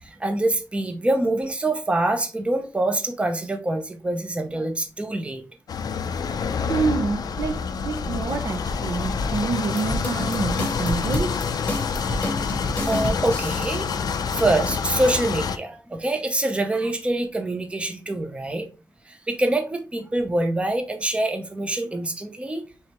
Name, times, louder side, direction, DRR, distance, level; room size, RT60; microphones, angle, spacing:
voice 1, 0.0-5.4 12.0-12.3 12.9-13.9 14.3-18.7 19.0-22.6, right 2 dB, 15° right, 0.6 m, -25 dB
sound 1, 5.7-15.6, left 5 dB, 75° left, 0.4 m, -27 dB
voice 2, 6.7-11.4, right 4 dB, 65° right, 0.6 m, -27 dB
sound 2, 9.8-13.9, left 1 dB, 20° left, 0.9 m, -30 dB
4.8 x 3.2 x 2.9 m
wide cardioid pair, 165°, 7 cm